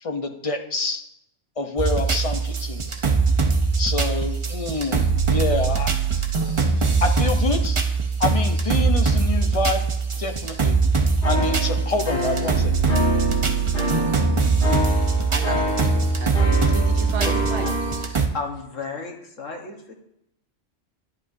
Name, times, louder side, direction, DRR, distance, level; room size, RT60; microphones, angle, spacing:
voice 1, 0.0-1.0 1.6-2.8 3.8-5.9 6.4-6.7 7.0-7.8 8.2-9.8 10.2-10.8 11.2-12.7, left 2 dB, 35° left, 5 dB, 0.7 m, -27 dB
sound 1, 1.8-18.3, right 4 dB, 30° right, 0.6 m, -22 dB
sound 2, 11.2-18.1, left 1 dB, 65° left, 3.3 m, -27 dB
voice 2, 15.3-17.7, right 6 dB, 70° right, 7 dB, 1.1 m, -34 dB
voice 3, 18.3-19.9, left 4 dB, 80° left, 2 dB, 1.7 m, -33 dB
11.0 x 10.5 x 2.7 m, 0.80 s
omnidirectional pair, 1.3 m